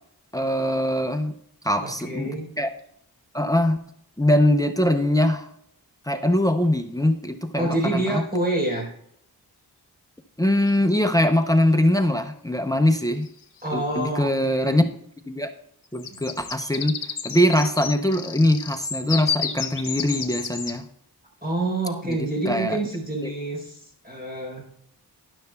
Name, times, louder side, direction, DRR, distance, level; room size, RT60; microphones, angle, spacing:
voice 1, 0.3-1.3 1.6-2.3 2.6-2.7 3.3-3.8 4.2-5.5 6.1-8.2 10.4-13.3 13.7-14.9 15.3-15.5 15.9-17.0 17.2-20.8 22.1-22.8 23.2-23.3, left 1 dB, 10° left, 7 dB, 0.6 m, -22 dB
voice 2, 1.8-2.5 7.5-8.9 13.6-14.8 16.1-16.2 21.4-24.7, right 2 dB, 25° right, -1 dB, 4.1 m, -27 dB
sound 1, 6.3-6.4 10.7-11.2 12.9-13.0 13.3-13.6 15.9-20.8, left 6 dB, 75° left, 0.9 m, -31 dB
12.5 x 10.5 x 2.3 m, 0.68 s
wide cardioid pair, 80°, 40 cm